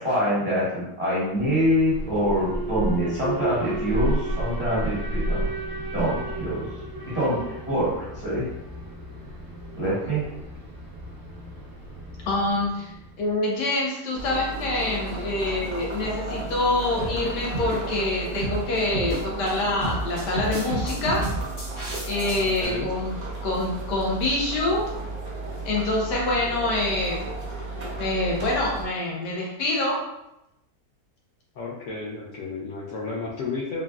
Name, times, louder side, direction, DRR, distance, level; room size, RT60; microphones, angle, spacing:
voice 1, 0.0-5.5 5.9-6.6 7.1-8.4 9.8-10.2, equal, 5° right, -11 dB, 1.3 m, -25 dB
Alarm, 1.4-13.4, right 1 dB, 40° right, 0.8 m, -32 dB
voice 2, 9.8-10.3 22.3-22.9 31.5-33.8, left 4 dB, 70° left, -6 dB, 0.7 m, -33 dB
voice 3, 12.3-12.9 13.2-21.3 22.0-23.1 23.4-24.9 25.6-27.2 28.0-30.0, left 2 dB, 90° left, -3 dB, 1.4 m, -26 dB
sound 1, 14.1-28.9, right 2 dB, 60° right, 0.4 m, -34 dB
sound 2, 17.0-17.2 17.5-17.8 18.4-18.6 18.9-19.5 19.8-22.7, right 2 dB, 35° left, 1.1 m, -31 dB
3.8 x 2.2 x 2.3 m, 0.87 s
omnidirectional pair, 1.8 m